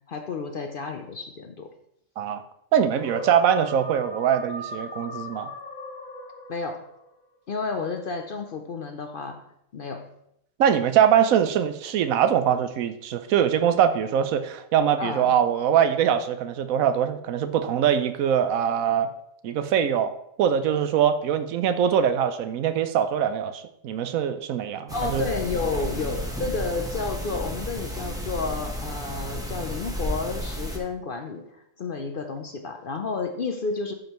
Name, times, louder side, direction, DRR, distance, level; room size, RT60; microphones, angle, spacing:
voice 1, 0.1-1.7 6.5-6.9 7.5-9.4 9.7-10.1 15.0-15.3 24.9-33.9, left 4 dB, 55° left, 5 dB, 0.6 m, -31 dB
voice 2, 2.7-5.5 10.6-19.1 19.4-20.1 20.4-25.3, right 8 dB, 80° right, 10 dB, 1.1 m, -23 dB
sound 1, 2.9-7.0, equal, 35° left, 1.0 m, -38 dB
sound 2, 24.9-30.8, equal, 5° right, 0.9 m, -32 dB
12.5 x 5.2 x 3.0 m, 0.77 s
omnidirectional pair, 1.4 m